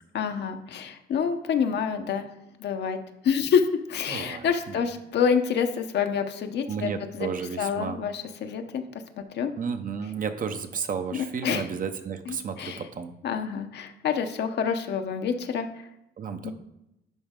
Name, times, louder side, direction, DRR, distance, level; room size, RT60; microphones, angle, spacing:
voice 1, 0.1-2.3 2.6-3.0 3.2-7.3 7.6-8.8 9.2-9.5 11.1-11.7 12.3-12.8 13.2-15.7 16.4-16.5, left 7 dB, 65° left, 6 dB, 0.8 m, -27 dB
voice 2, 4.1-4.8 6.7-8.0 9.6-13.1 16.2-16.5, right 6 dB, 45° right, 8 dB, 0.8 m, -32 dB
10.5 x 4.0 x 3.7 m, 0.86 s
cardioid pair, 90°, 19 cm